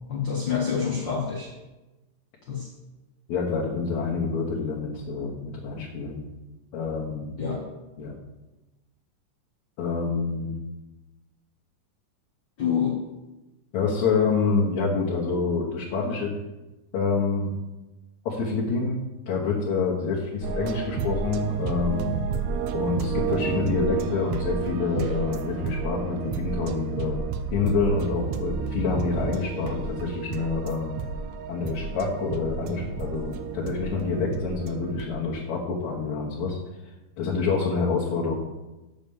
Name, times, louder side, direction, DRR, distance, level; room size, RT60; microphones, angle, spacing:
voice 1, 0.1-1.5 2.5-2.7 7.4-7.6 12.6-13.0, left 7 dB, 85° left, 0 dB, 1.0 m, -27 dB
voice 2, 3.3-6.2 6.7-7.4 8.0-8.1 9.8-10.5 13.7-16.3 16.9-17.5 18.3-22.2 22.7-27.2 27.5-30.9 31.5-36.6 37.2-38.3, left 4 dB, 65° left, -4 dB, 2.4 m, -27 dB
sound 1, 20.4-35.1, right 6 dB, 75° right, 1.7 m, -31 dB
7.0 x 6.6 x 7.1 m, 1.1 s
omnidirectional pair, 3.8 m